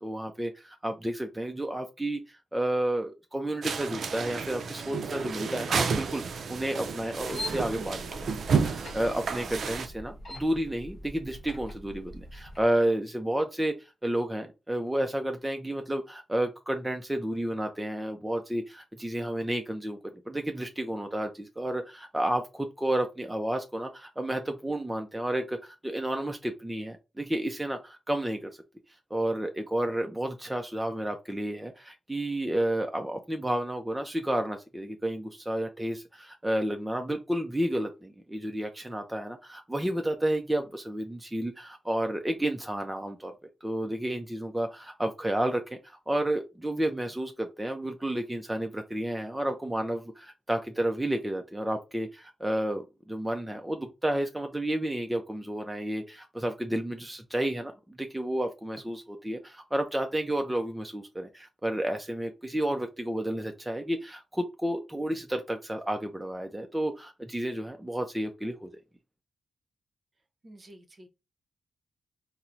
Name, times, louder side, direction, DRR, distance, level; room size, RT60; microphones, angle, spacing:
voice 1, 0.0-8.0 8.5-20.0 20.3-28.6 29.1-43.3 43.6-68.7, right 1 dB, 10° right, 0.4 m, -31 dB
sound 1, 3.6-9.9, right 5 dB, 70° right, 0.4 m, -31 dB
sound 2, 7.1-12.7, left 1 dB, 50° left, 0.9 m, -43 dB
voice 2, 70.4-71.1, right 1 dB, 40° right, 0.7 m, -50 dB
4.2 x 2.0 x 2.5 m
cardioid pair, 90°, 0 cm